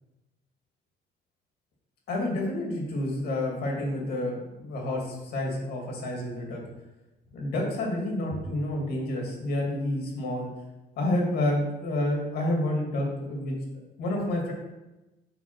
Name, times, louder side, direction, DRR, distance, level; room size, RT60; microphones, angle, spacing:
voice 1, 2.1-6.6 7.3-10.5 11.0-13.5 14.0-14.5, left 1 dB, 70° left, -1 dB, 2.2 m, -29 dB
6.0 x 3.8 x 5.9 m, 1.0 s
cardioid pair, 110°, 17 cm